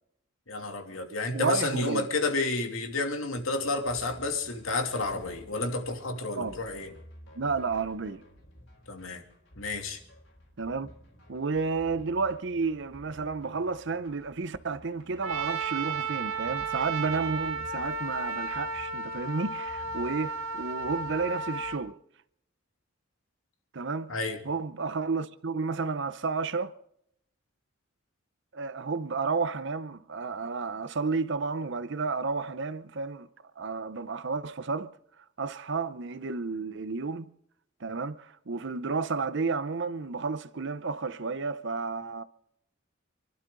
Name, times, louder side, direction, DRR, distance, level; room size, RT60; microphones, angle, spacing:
voice 1, 0.5-6.9 8.9-9.2 9.6-10.0 24.1-24.4, left 2 dB, 90° left, 2.6 m, -31 dB
voice 2, 1.3-2.1 6.4-6.6 7.4-8.2 10.6-10.9 11.3-22.0 23.7-24.2 24.4-26.8 28.5-33.3 33.6-34.9 35.4-37.3 37.8-42.2, right 4 dB, 60° right, 0.7 m, -31 dB
sound 1, 3.3-21.8, equal, 70° left, 4.3 m, -53 dB
Trumpet, 15.2-21.8, right 4 dB, 90° right, 1.8 m, -33 dB
28.0 x 12.0 x 3.8 m
head